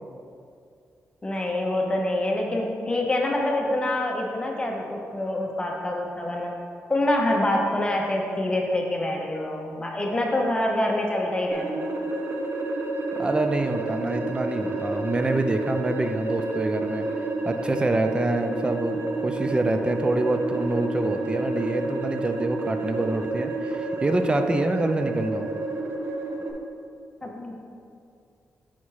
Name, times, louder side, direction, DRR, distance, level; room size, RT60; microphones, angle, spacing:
voice 1, 1.2-6.5 6.9-11.9 27.2-27.6, left 1 dB, 20° left, 0 dB, 0.8 m, -26 dB
sound 1, 11.5-26.5, right 2 dB, 55° right, 0.7 m, -30 dB
voice 2, 13.2-17.1 17.4-25.5, right 2 dB, 20° right, 7 dB, 0.4 m, -26 dB
5.8 x 4.1 x 4.7 m, 2.3 s
wide cardioid pair, 125°, 5 cm